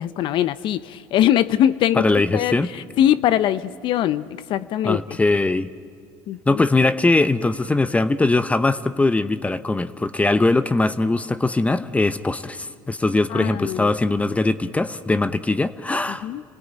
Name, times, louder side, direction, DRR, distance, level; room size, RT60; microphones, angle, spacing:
voice 1, 0.0-2.1 2.3-5.0 6.3-6.6 13.3-14.0 16.1-16.4, left 11 dB, 55° left, 15 dB, 0.7 m, -22 dB
voice 2, 1.9-2.7 4.8-5.7 6.5-16.3, left 2 dB, 15° left, 14 dB, 0.8 m, -21 dB
28.0 x 17.5 x 9.1 m, 2.4 s
supercardioid pair, 90°, 10 cm